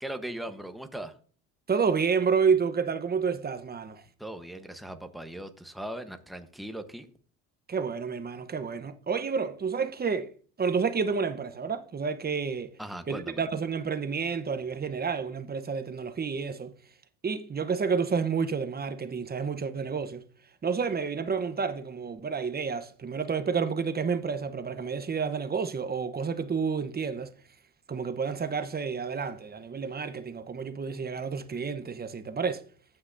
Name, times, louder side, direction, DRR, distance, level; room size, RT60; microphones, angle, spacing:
voice 1, 0.0-1.1 4.2-7.1 12.8-13.4, right 1 dB, ahead, 1.1 m, -39 dB
voice 2, 1.7-4.0 7.7-10.3 10.6-12.7 13.1-16.7 17.2-20.2 20.6-27.3 27.9-32.6, right 5 dB, 25° right, 0.9 m, -30 dB
16.0 x 5.9 x 2.6 m
supercardioid pair, 80°, 39 cm